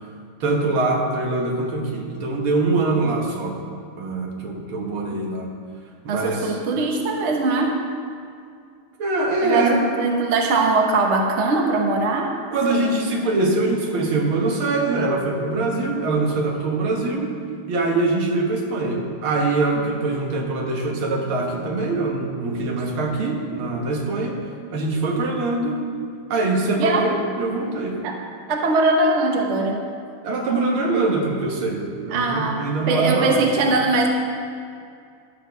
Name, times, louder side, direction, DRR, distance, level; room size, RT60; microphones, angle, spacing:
voice 1, 0.4-3.6 4.0-5.5 6.1-6.6 9.0-9.8 12.5-17.4 17.7-24.4 24.7-25.9 26.3-28.0 30.2-33.4, right 2 dB, 80° right, 1 dB, 2.1 m, -23 dB
voice 2, 6.1-7.8 9.4-12.4 12.7-13.0 26.8-27.1 28.0-28.2 28.5-29.8 32.1-34.1, right 3 dB, 45° right, 2 dB, 1.0 m, -21 dB
12.0 x 5.0 x 6.5 m, 2.3 s
omnidirectional pair, 2.3 m